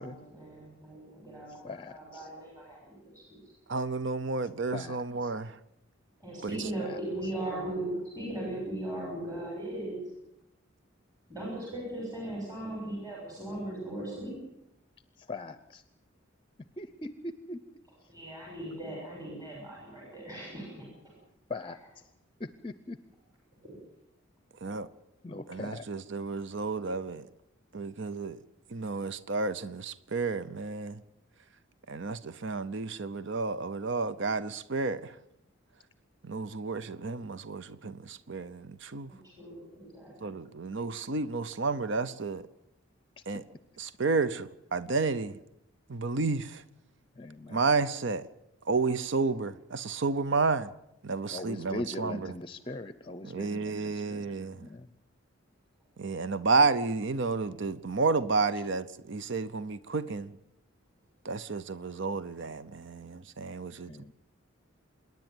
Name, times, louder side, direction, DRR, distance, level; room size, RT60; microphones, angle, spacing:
voice 1, 0.0-3.2 6.2-10.0 11.3-14.4 18.1-21.1 23.6-23.8 39.1-40.4, right 1 dB, 20° right, 6.4 m, -38 dB
voice 2, 1.6-2.3 4.7-5.3 6.8-7.0 15.2-15.8 16.8-17.6 21.5-21.8 22.4-23.0 25.2-25.9 47.2-47.6 51.3-54.9 63.9-64.1, left 2 dB, 25° left, 0.7 m, -41 dB
voice 3, 3.7-5.6 6.4-6.6 24.6-24.9 25.5-27.3 27.7-28.4 28.7-31.0 31.9-35.2 36.2-39.1 40.2-42.4 43.3-43.4 43.8-45.4 45.9-46.6 47.5-48.3 48.7-50.7 51.0-52.4 53.2-54.7 56.0-60.4 61.2-64.1, right 4 dB, 60° right, 0.8 m, -31 dB
27.0 x 10.5 x 9.2 m
head